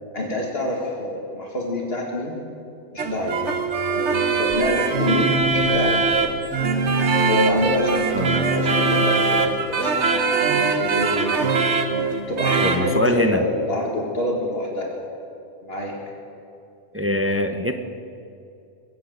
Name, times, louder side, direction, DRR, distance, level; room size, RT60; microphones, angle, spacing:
voice 1, 0.1-2.4 2.9-3.4 4.4-6.0 7.3-11.3 12.3-14.9 15.6-16.0, left 1 dB, 60° left, -1 dB, 2.1 m, -27 dB
sound 1, 3.0-12.9, right 4 dB, 75° right, 1.5 m, -21 dB
voice 2, 12.6-13.4 16.9-17.7, left 1 dB, 15° right, 6 dB, 0.6 m, -23 dB
21.5 x 8.2 x 7.9 m, 2.6 s
omnidirectional pair, 1.2 m